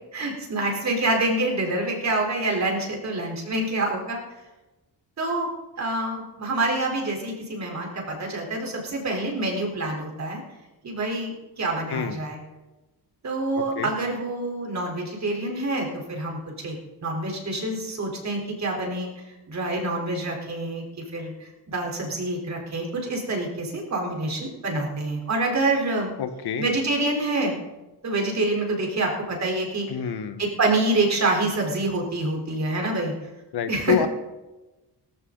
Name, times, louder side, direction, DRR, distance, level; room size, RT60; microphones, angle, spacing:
voice 1, 0.1-4.2 5.2-5.5 5.8-10.4 10.8-12.4 13.2-19.1 19.5-20.8 21.1-26.1 26.6-27.6 28.0-29.9 30.4-33.1 33.7-34.1, right 2 dB, 40° right, 1 dB, 4.1 m, -26 dB
voice 2, 11.9-12.2 13.6-13.9 26.2-26.6 29.9-30.5 33.5-34.1, left 7 dB, 70° left, 9 dB, 1.4 m, -27 dB
17.5 x 15.0 x 4.0 m, 1.1 s
cardioid pair, 115°, 41 cm